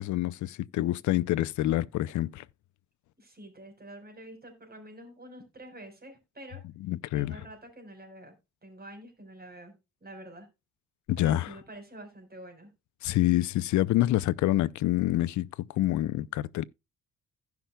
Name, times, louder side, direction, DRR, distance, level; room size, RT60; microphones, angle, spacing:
voice 1, 0.0-2.4 6.8-7.4 11.1-11.5 13.0-16.6, left 15 dB, 70° left, 0.5 m, -27 dB
voice 2, 3.2-6.6 7.1-8.4 8.6-9.7 10.0-10.5 11.2-12.7, right 1 dB, 30° right, 4.4 m, -47 dB
16.5 x 5.9 x 2.2 m
cardioid pair, 90°, 30 cm